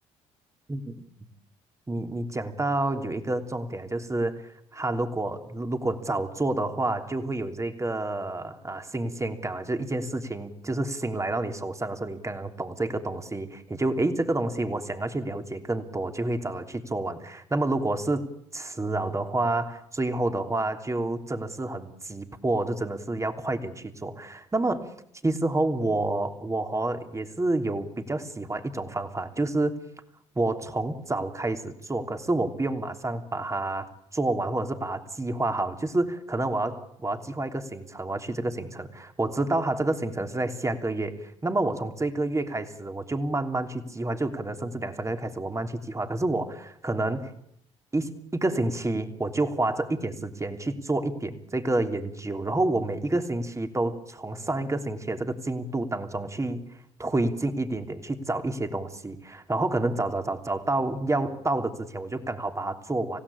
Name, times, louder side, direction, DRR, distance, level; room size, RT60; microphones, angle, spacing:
voice 1, 1.9-18.3 18.5-24.9 25.2-29.8 30.3-47.3 47.9-56.6 57.0-63.2, right 2 dB, 20° right, 7 dB, 3.1 m, -29 dB
26.5 x 16.5 x 8.6 m, 0.75 s
hypercardioid pair, 60°, 15 cm